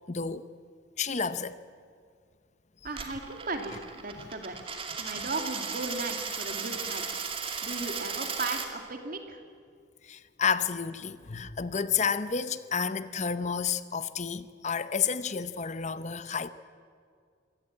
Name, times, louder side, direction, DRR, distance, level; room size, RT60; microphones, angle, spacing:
voice 1, 0.1-0.4 1.0-1.6 4.2-4.3 5.1-5.2 10.0-16.5, left 6 dB, 40° left, 0.7 m, -31 dB
voice 2, 2.8-4.7 5.0-7.0 7.6-9.4, right 3 dB, 50° right, 2.7 m, -36 dB
Coin (dropping), 2.9-8.7, right 5 dB, 30° right, 2.5 m, -36 dB
24.5 x 18.5 x 8.8 m
head